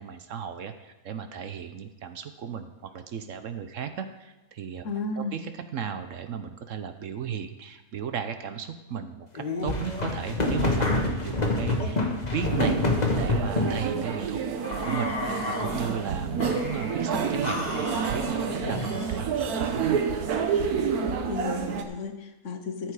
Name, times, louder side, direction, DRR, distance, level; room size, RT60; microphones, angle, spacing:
voice 1, 0.0-4.8 5.2-12.8 13.2-14.4 14.8-20.0, right 7 dB, 65° right, 9 dB, 1.0 m, -35 dB
voice 2, 4.8-5.3 15.7-15.8 21.3-22.9, left 4 dB, 60° left, 6 dB, 1.3 m, -33 dB
sound 1, 9.4-13.8 14.6-15.9 16.4-17.0 17.4-19.3, left 2 dB, 30° left, 1.4 m, -28 dB
sound 2, 12.4-21.8, right 6 dB, 85° right, 1.5 m, -29 dB
13.5 x 7.7 x 4.8 m, 1.0 s
omnidirectional pair, 1.6 m